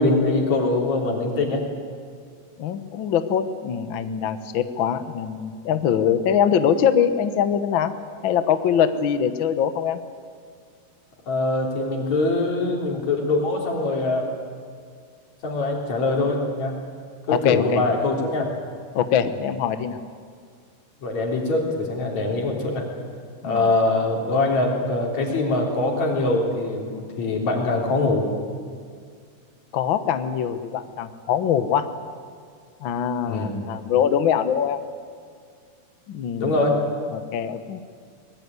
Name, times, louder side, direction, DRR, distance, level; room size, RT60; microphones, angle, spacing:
voice 1, 0.0-1.6 11.3-14.3 15.4-16.8 17.3-18.5 21.0-22.9 23.4-28.3 33.3-33.5 36.4-36.8, left 2 dB, 55° left, 1 dB, 4.7 m, -23 dB
voice 2, 2.6-7.9 8.2-10.0 17.3-17.8 18.9-20.0 23.4-23.7 29.7-31.9 32.8-34.8 36.1-36.8 37.1-37.8, left 8 dB, 75° left, 11 dB, 1.1 m, -23 dB
23.5 x 20.0 x 9.6 m, 2.1 s
omnidirectional pair, 3.8 m